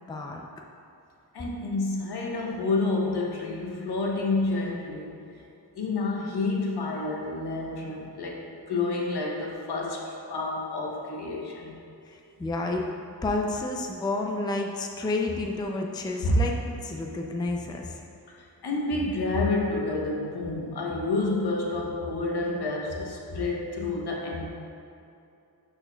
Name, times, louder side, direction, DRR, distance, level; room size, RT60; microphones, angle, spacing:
voice 1, 0.1-0.4 12.1-12.8 13.2-16.5 16.8-18.0, left 2 dB, 10° left, 1 dB, 0.4 m, -30 dB
voice 2, 1.3-5.2 5.7-11.8 16.2-16.4 18.3-24.5, left 2 dB, 80° left, -1 dB, 1.0 m, -29 dB
11.5 x 4.4 x 2.3 m, 2.7 s
wide cardioid pair, 145°, 39 cm